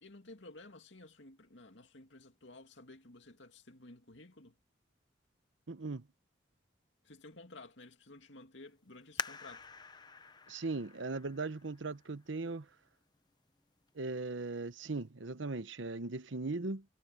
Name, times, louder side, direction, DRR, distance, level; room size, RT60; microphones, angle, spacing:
voice 1, 0.0-4.6 7.0-9.7, left 2 dB, 75° left, 2.5 m, -54 dB
voice 2, 5.7-6.1 10.5-12.7 13.9-16.8, right 3 dB, 80° right, 1.0 m, -38 dB
sound 1, 9.2-12.5 13.1-13.2 13.9-14.3 14.6-14.7, left 5 dB, 20° left, 0.7 m, -45 dB
head